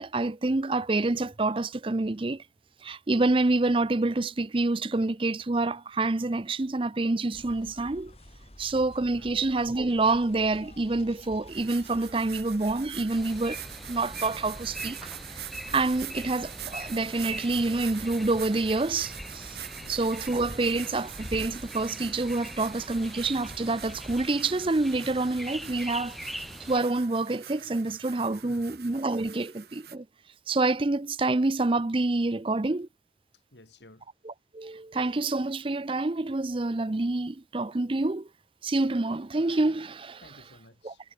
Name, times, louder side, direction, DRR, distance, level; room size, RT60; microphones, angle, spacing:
voice 1, 0.0-2.4 2.8-8.1 8.6-15.1 15.7-19.6 19.9-30.1 30.5-32.9 34.2-38.3 38.6-40.2 40.8-40.9, right 2 dB, 30° right, 0.6 m, -27 dB
sound 1, 7.3-24.3, equal, 35° left, 6.2 m, -48 dB
sound 2, 11.5-30.0, right 11 dB, 65° right, 1.2 m, -44 dB
sound 3, 13.1-26.8, equal, ahead, 0.7 m, -43 dB
voice 2, 28.4-28.7 33.5-34.1 40.2-41.0, left 1 dB, 85° left, 5.9 m, -53 dB
head